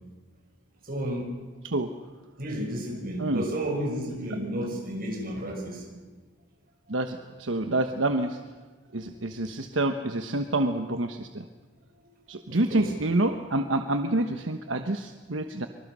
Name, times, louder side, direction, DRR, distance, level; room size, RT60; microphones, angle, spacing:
voice 1, 0.8-1.3 2.4-5.8 12.5-12.9, right 1 dB, 50° right, 2 dB, 6.1 m, -32 dB
voice 2, 6.9-8.4 8.9-11.5 12.3-15.7, right 2 dB, 80° right, 7 dB, 1.2 m, -27 dB
25.0 x 24.5 x 6.3 m, 1.4 s
head